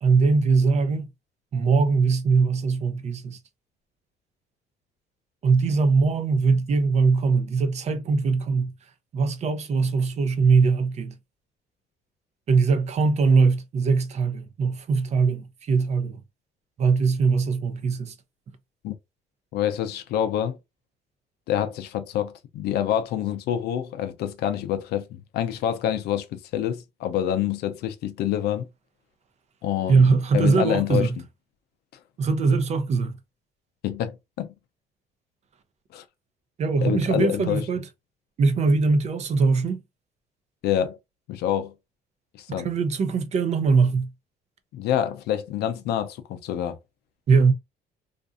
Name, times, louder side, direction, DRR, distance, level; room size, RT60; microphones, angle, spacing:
voice 1, 0.0-1.1 1.5-3.4 5.4-8.7 9.1-11.2 12.5-16.2 16.8-18.1 29.9-31.1 32.2-33.1 36.6-37.9 38.4-39.8 42.6-44.1 47.3-47.5, right 4 dB, 40° right, 0.5 m, -21 dB
voice 2, 19.5-20.6 21.5-28.7 29.6-31.1 33.8-34.5 35.9-36.0 36.8-37.6 40.6-41.0 41.3-41.7 42.4-42.7 44.7-46.8, left 10 dB, 70° left, 0.5 m, -27 dB
2.5 x 2.5 x 2.3 m
cardioid pair, 110°, 17 cm